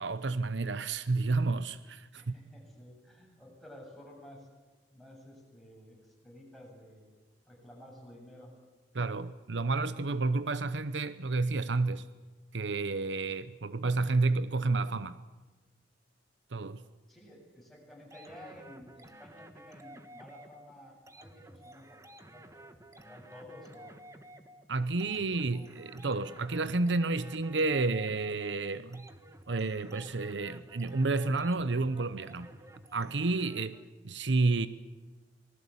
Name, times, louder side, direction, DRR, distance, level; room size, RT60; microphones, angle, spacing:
voice 1, 0.0-2.3 8.9-12.1 12.5-15.2 16.5-16.8 24.7-29.1 29.5-32.5 32.9-33.8 34.0-34.7, right 3 dB, 75° right, 0.8 m, -30 dB
voice 2, 2.2-4.5 4.9-7.1 7.5-8.5 17.1-23.9 25.4-25.7, left 1 dB, ahead, 7.4 m, -52 dB
sound 1, 18.1-33.8, right 1 dB, 15° right, 1.4 m, -53 dB
26.0 x 19.5 x 8.5 m
head